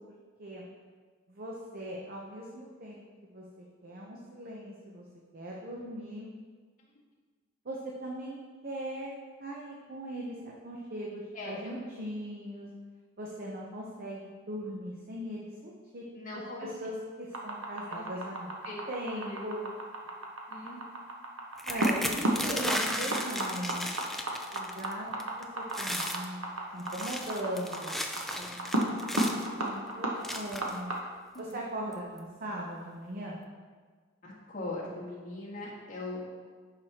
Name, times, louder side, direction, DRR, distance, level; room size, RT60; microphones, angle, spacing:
voice 1, 1.3-3.0 3.3-5.0 5.3-6.3 7.6-12.7 13.2-16.0 16.3-18.5 18.9-19.6 21.7-23.9 24.5-26.5 26.7-28.0 28.4-28.6 29.6-30.9 31.4-33.4, right 1 dB, 45° right, -3 dB, 0.8 m, -39 dB
voice 2, 11.3-11.8 16.2-16.7 17.9-18.3 18.6-18.9 19.1-19.4 20.5-20.8 31.3-31.6 34.2-36.3, left 2 dB, 40° left, -5 dB, 1.7 m, -40 dB
sound 1, 17.3-31.0, right 1 dB, 75° right, 1.0 m, -32 dB
sound 2, 21.6-24.9 25.2-25.4 25.7-26.3 26.8-29.5 30.2-30.8 31.5-31.6 31.9-32.2, left 1 dB, ahead, 0.4 m, -35 dB
11.0 x 4.7 x 2.9 m, 1.5 s
head